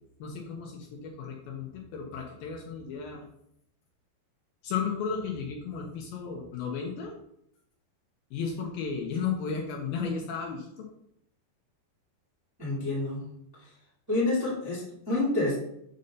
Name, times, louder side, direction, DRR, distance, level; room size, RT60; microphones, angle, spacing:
voice 1, 0.2-3.2 4.6-7.1 8.3-10.9, left 6 dB, 80° left, 1 dB, 2.2 m, -34 dB
voice 2, 12.6-13.2 14.1-15.6, left 2 dB, 15° right, -7 dB, 0.8 m, -28 dB
7.6 x 2.7 x 5.3 m, 0.76 s
omnidirectional pair, 4.6 m